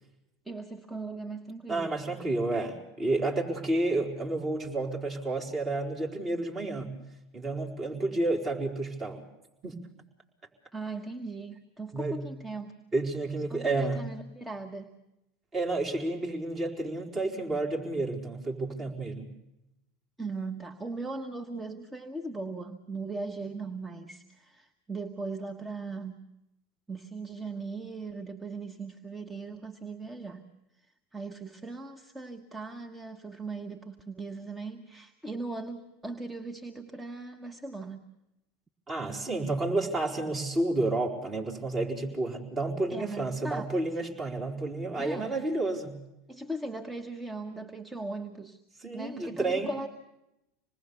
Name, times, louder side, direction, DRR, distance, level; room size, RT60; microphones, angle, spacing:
voice 1, 0.4-1.9 10.7-12.8 13.5-14.9 20.2-26.2 26.9-30.4 31.1-38.1 42.9-43.7 44.9-45.4 46.3-48.6 48.9-49.9, right 3 dB, 10° right, 3 dB, 1.3 m, -39 dB
voice 2, 1.7-6.9 7.3-9.2 9.6-9.7 11.9-12.2 12.9-14.0 15.5-19.3 38.9-46.0 48.8-49.7, right 2 dB, 30° right, 0 dB, 4.4 m, -30 dB
26.5 x 20.0 x 7.1 m, 0.90 s
hypercardioid pair, 85°, 0 cm